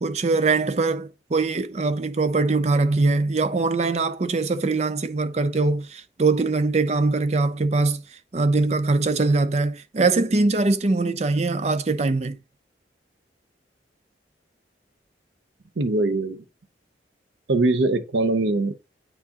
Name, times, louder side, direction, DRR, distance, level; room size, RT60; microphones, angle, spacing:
voice 1, 0.0-8.0 8.3-12.4, right 3 dB, 40° right, 0.5 m, -22 dB
voice 2, 15.8-16.4 17.5-18.7, right 2 dB, 85° right, 0.7 m, -22 dB
8.6 x 4.6 x 2.8 m
head